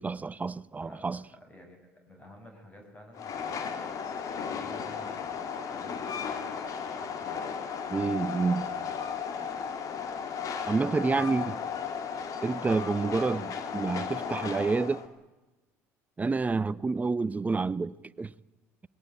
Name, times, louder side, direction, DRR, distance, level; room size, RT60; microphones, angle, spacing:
voice 1, 0.0-1.2 7.9-8.7 10.6-11.5 12.4-15.1 16.2-18.3, right 4 dB, 20° right, 0.7 m, -28 dB
voice 2, 0.8-7.5 8.5-9.7 11.3-11.5, left 1 dB, 20° left, 6.1 m, -52 dB
Train, 3.1-15.1, left 6 dB, 50° left, 2.6 m, -35 dB
20.5 x 17.5 x 9.3 m
hypercardioid pair, 70°, 7 cm